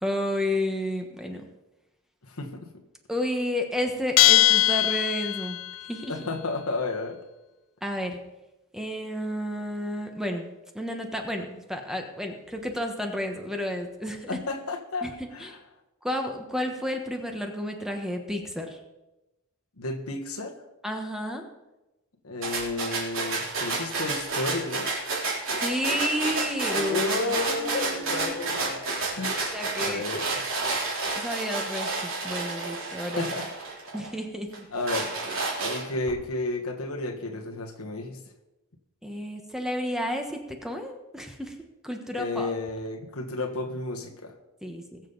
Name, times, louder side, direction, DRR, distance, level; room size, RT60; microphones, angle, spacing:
voice 1, 0.0-1.4 3.1-5.6 5.9-6.1 7.8-8.2 8.7-14.3 15.0-15.1 15.4-15.5 16.0-18.8 20.8-21.5 25.6-28.4 29.5-30.0 31.1-33.3 33.9-34.6 39.0-42.5 44.6-45.0, left 1 dB, ahead, 3 dB, 1.2 m, -31 dB
voice 2, 2.2-2.7 6.1-7.2 14.3-15.6 19.8-20.6 22.2-24.9 26.7-28.9 29.1-29.5 29.8-30.3 33.2-33.5 34.7-35.2 35.6-38.2 42.1-44.3, left 2 dB, 80° left, 3 dB, 1.5 m, -32 dB
Bell, 4.2-5.7, left 14 dB, 65° left, 0.4 m, -20 dB
sound 1, 22.4-34.1 34.5-36.1, right 3 dB, 60° right, 3.5 m, -30 dB
20.5 x 7.4 x 4.0 m, 1.0 s
head